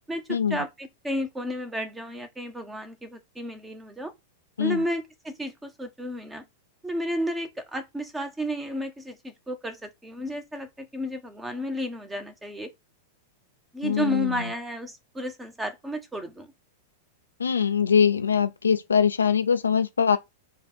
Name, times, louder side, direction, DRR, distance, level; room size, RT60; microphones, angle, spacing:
voice 1, 0.1-4.1 4.6-6.4 6.8-12.7 13.7-16.5, equal, 10° right, 1.1 m, -32 dB
voice 2, 13.8-14.4 17.4-20.2, left 7 dB, 85° left, 0.5 m, -22 dB
4.3 x 2.5 x 4.3 m
hypercardioid pair, 100°, 0 cm